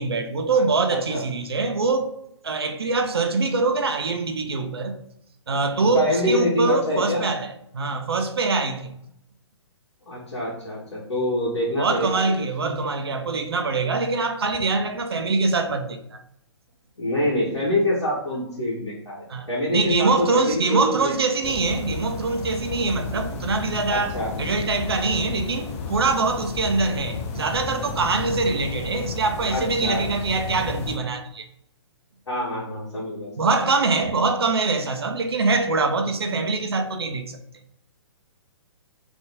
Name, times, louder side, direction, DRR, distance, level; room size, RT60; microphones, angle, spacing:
voice 1, 0.0-2.2 2.4-4.9 5.5-8.9 11.8-16.2 19.3-31.5 33.4-37.2, right 3 dB, 60° right, 0.7 m, -24 dB
voice 2, 5.9-7.2 10.1-12.3 12.6-12.7 17.0-21.1 23.9-24.6 29.5-30.0 32.3-33.5, left 1 dB, 65° left, 1.7 m, -26 dB
sound 1, 21.4-31.0, left 4 dB, 30° left, 0.6 m, -33 dB
3.9 x 3.5 x 3.6 m
figure-of-eight pair, 125°, 15 cm